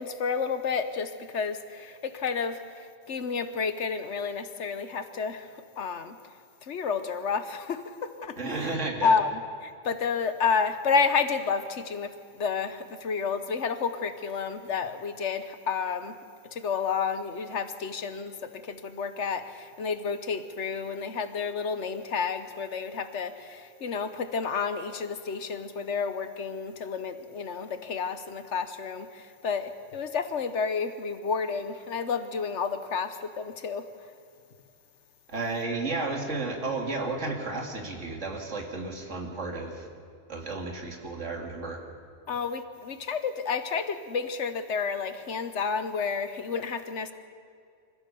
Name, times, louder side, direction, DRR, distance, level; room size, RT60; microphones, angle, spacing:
voice 1, 0.0-5.5 5.8-6.2 6.6-8.7 9.0-16.1 16.5-33.9 42.3-47.1, left 5 dB, 65° left, 10 dB, 1.3 m, -30 dB
voice 2, 8.4-9.2 35.3-39.9 40.3-41.8, right 3 dB, 70° right, 2 dB, 2.6 m, -32 dB
24.5 x 15.5 x 6.9 m, 2.3 s
omnidirectional pair, 1.3 m